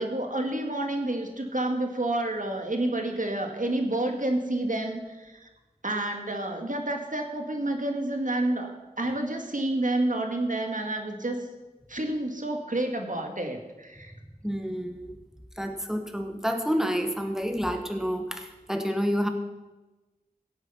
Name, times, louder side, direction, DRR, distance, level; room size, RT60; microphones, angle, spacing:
voice 1, 0.0-5.5 5.8-11.5 11.9-14.1, right 1 dB, 60° right, 3 dB, 2.0 m, -29 dB
voice 2, 14.4-15.2 15.6-19.3, equal, 5° right, 4 dB, 1.6 m, -29 dB
17.0 x 8.1 x 5.6 m, 1.2 s
wide cardioid pair, 45°, 16 cm